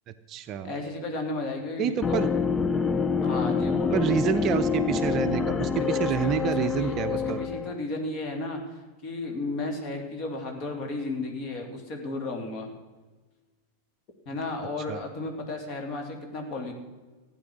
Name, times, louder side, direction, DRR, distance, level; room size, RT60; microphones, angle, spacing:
voice 1, 0.1-0.7 1.8-2.3 3.9-7.4 14.9-15.0, right 8 dB, 35° right, 9 dB, 0.7 m, -28 dB
voice 2, 0.6-2.3 3.2-4.1 5.8-12.7 14.3-16.7, left 2 dB, 35° left, 3 dB, 2.8 m, -34 dB
sound 1, 2.0-7.7, left 5 dB, 15° left, 0.6 m, -27 dB
15.5 x 8.9 x 6.2 m, 1.3 s
figure-of-eight pair, 90°, 0 cm